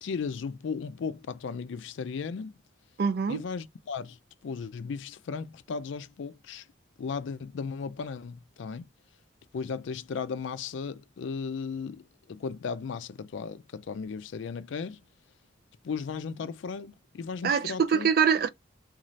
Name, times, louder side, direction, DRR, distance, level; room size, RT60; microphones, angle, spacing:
voice 1, 0.0-2.6 3.3-4.2 4.4-6.7 7.0-8.9 9.5-15.0 15.8-18.1, left 5 dB, 75° left, 0.4 m, -36 dB
voice 2, 3.0-3.4 17.4-18.5, right 6 dB, 50° right, 0.3 m, -24 dB
2.6 x 2.4 x 3.1 m
head